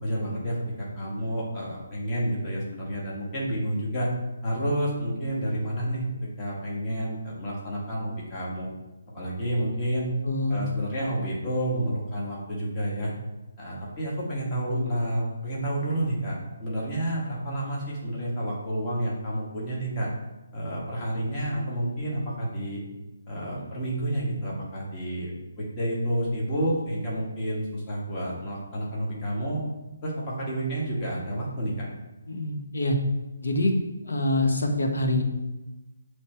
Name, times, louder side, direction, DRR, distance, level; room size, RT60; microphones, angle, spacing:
voice 1, 0.0-4.1 4.4-6.0 6.4-8.7 9.1-10.1 10.5-13.1 13.6-20.1 20.5-22.8 23.3-29.6 30.0-31.9, right 1 dB, 20° left, -5 dB, 1.3 m, -30 dB
voice 2, 10.2-10.6 32.3-33.0 33.4-33.7 34.0-35.2, left 1 dB, 85° left, 3 dB, 1.0 m, -25 dB
6.9 x 3.2 x 4.3 m, 1.0 s
hypercardioid pair, 175°, 0 cm